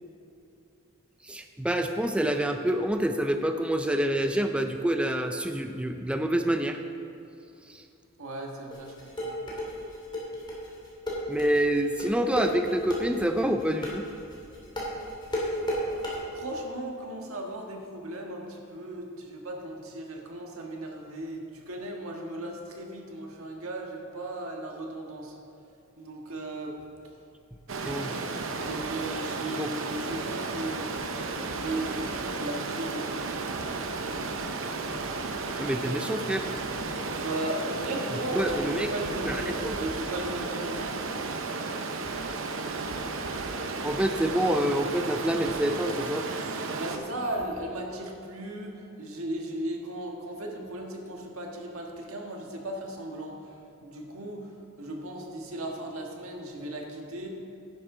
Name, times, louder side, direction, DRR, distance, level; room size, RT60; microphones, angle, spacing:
voice 1, 1.3-6.8 11.3-14.1 27.9-28.1 29.6-29.7 35.6-36.4 38.3-38.9 39.2-39.4 39.6-39.8 43.8-46.2, right 1 dB, 5° right, 6 dB, 0.4 m, -27 dB
voice 2, 8.2-9.4 16.3-25.4 26.0-26.8 28.6-30.9 31.5-33.2 37.1-41.1 46.8-54.5 54.8-57.3, right 1 dB, 90° right, 1 dB, 1.5 m, -36 dB
sound 1, 8.7-16.2, equal, 20° left, 2.4 m, -32 dB
Stream, 27.7-47.0, right 3 dB, 65° right, 0.8 m, -33 dB
11.0 x 10.0 x 3.8 m, 2.7 s
head